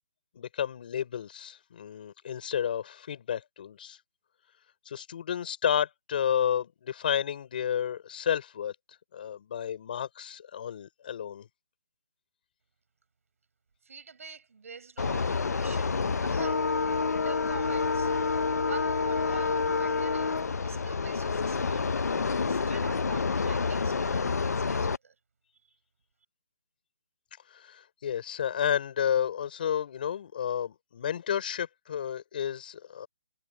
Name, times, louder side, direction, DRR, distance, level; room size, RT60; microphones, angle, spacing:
voice 1, 0.3-4.0 4.8-8.8 9.1-11.5 27.5-33.1, left 9 dB, 35° left, 6.0 m, -31 dB
voice 2, 13.8-16.7 17.1-18.1 18.6-25.2, right 5 dB, 60° right, 5.4 m, -47 dB
sound 1, 15.0-25.0, left 4 dB, 80° left, 1.1 m, -28 dB
hypercardioid pair, 175°, 9 cm